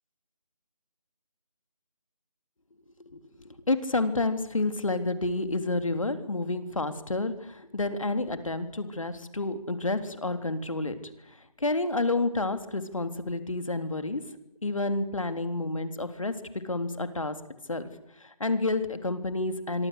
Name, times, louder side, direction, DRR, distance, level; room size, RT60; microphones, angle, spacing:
voice 1, 3.1-11.0 11.6-14.2 14.6-17.4 17.7-17.9 18.2-19.9, left 2 dB, 60° left, 9 dB, 3.5 m, -29 dB
25.5 x 24.0 x 8.2 m, 0.82 s
figure-of-eight pair, 175°, 20 cm